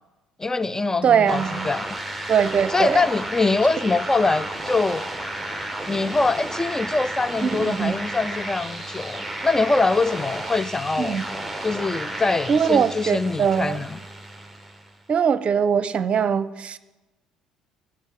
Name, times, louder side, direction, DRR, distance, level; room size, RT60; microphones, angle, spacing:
voice 1, 0.4-1.8 2.7-5.1 5.9-11.2 11.6-14.0, left 3 dB, 15° left, 0.4 m, -23 dB
voice 2, 1.0-1.7 2.3-3.0 7.4-8.0 11.0-11.2 12.5-13.8 15.1-16.8, right 7 dB, 40° right, 0.8 m, -21 dB
sound 1, 1.2-14.9, right 1 dB, ahead, 1.6 m, -33 dB
12.0 x 12.0 x 7.7 m
figure-of-eight pair, 55°, 3 cm